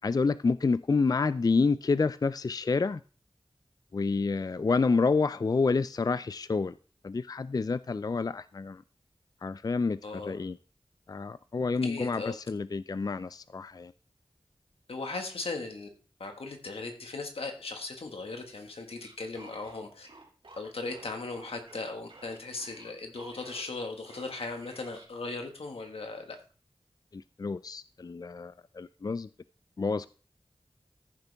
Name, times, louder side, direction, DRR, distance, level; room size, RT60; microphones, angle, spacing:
voice 1, 0.0-3.0 3.9-6.8 7.0-8.8 9.4-10.6 11.1-13.9 27.1-29.3 29.8-30.1, left 4 dB, 40° left, 0.4 m, -28 dB
voice 2, 10.0-10.4 11.8-12.3 14.9-15.9 16.2-20.1 20.6-26.4, left 3 dB, 90° left, 1.7 m, -38 dB
sound 1, 19.0-23.7 24.0-25.1, right 2 dB, 70° right, 2.5 m, -52 dB
14.5 x 6.8 x 3.5 m
cardioid pair, 40°, 10 cm